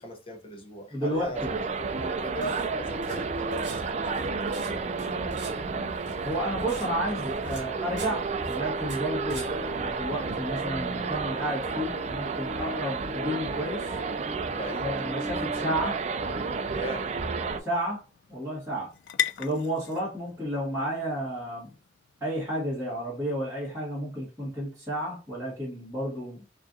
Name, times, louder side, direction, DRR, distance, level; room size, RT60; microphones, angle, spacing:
voice 1, 0.0-1.4 1.8-4.3 14.5-15.0 16.7-17.1, equal, 30° left, 0.7 m, -39 dB
voice 2, 0.9-1.6 6.2-14.0 14.8-16.0 17.6-18.0 18.3-18.9 19.4-21.7 22.2-26.4, equal, 15° right, 1.7 m, -32 dB
sound 1, 1.1-10.4, right 3 dB, 75° right, 0.9 m, -45 dB
sound 2, 1.3-17.6, right 4 dB, 40° right, 0.4 m, -31 dB
sound 3, 16.1-23.4, left 9 dB, 75° left, 0.3 m, -39 dB
4.8 x 2.5 x 2.6 m
head